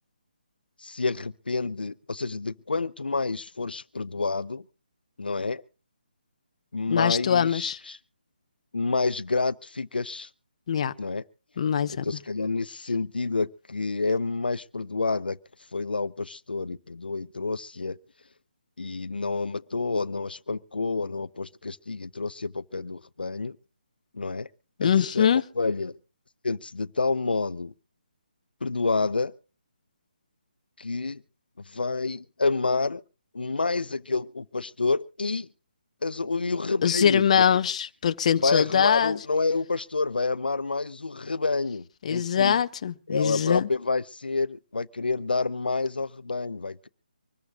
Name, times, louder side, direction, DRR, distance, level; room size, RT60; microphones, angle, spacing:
voice 1, 0.8-4.6 5.2-5.6 6.7-8.0 8.7-10.3 11.0-11.2 11.9-15.4 15.7-18.0 18.8-23.6 24.1-24.5 24.8-25.3 25.6-25.9 26.4-27.7 28.6-29.3 30.8-31.2 31.7-33.0 33.3-35.5 36.0-37.4 38.4-42.6 43.1-46.9, left 3 dB, 80° left, 0.7 m, -28 dB
voice 2, 6.9-7.8 10.7-10.9 11.6-12.0 24.8-25.4 36.8-39.2 42.0-43.7, left 8 dB, 45° left, 0.9 m, -23 dB
25.5 x 14.0 x 2.5 m
figure-of-eight pair, 150°, 5 cm